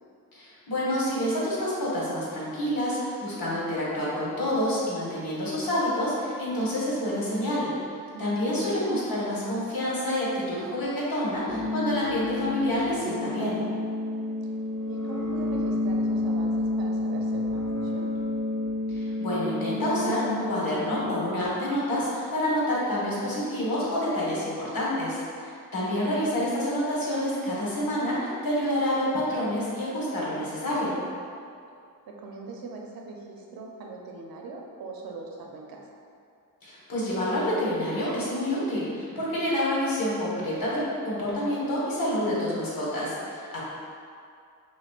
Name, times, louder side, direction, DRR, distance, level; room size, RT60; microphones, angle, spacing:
voice 1, 0.3-7.7 8.2-13.6 18.9-31.0 36.6-43.6, left 1 dB, 65° left, -7 dB, 1.2 m, -28 dB
voice 2, 8.1-8.8 14.4-14.5 14.9-18.1 26.4-26.5 31.7-35.9, right 3 dB, 70° right, 0 dB, 0.6 m, -42 dB
sound 1, 11.5-21.5, left 2 dB, 10° left, 0.8 m, -30 dB
5.9 x 2.0 x 2.3 m, 2.4 s
cardioid pair, 50°, 37 cm